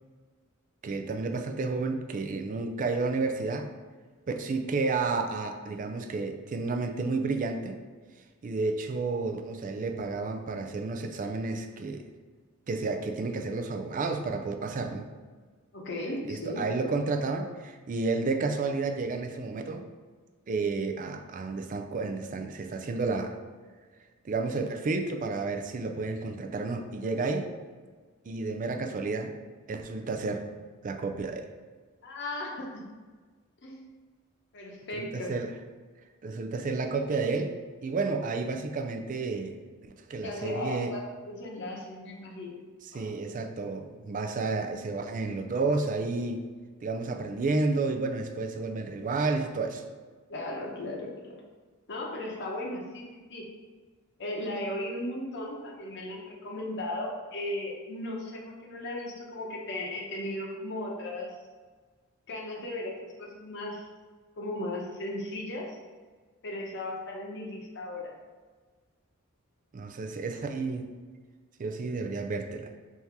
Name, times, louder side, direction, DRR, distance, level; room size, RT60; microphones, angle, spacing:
voice 1, 0.8-3.7 4.3-7.8 8.4-12.1 12.7-15.1 16.2-19.8 20.5-23.4 24.2-27.5 28.3-29.4 29.7-30.5 30.8-31.5 34.9-35.5 36.2-37.6 37.8-39.6 39.8-41.0 42.8-46.5 46.8-49.8 69.7-71.0 71.6-72.7, right 3 dB, 40° right, 5 dB, 0.4 m, -31 dB
voice 2, 15.7-16.6 32.0-32.8 33.6-33.9 34.5-35.3 40.2-42.6 42.9-43.1 50.3-51.4 51.9-53.5 54.2-61.4 62.3-63.9 64.4-65.8 66.4-68.1, left 1 dB, 55° left, -2 dB, 0.8 m, -36 dB
3.6 x 2.8 x 4.5 m, 1.4 s
head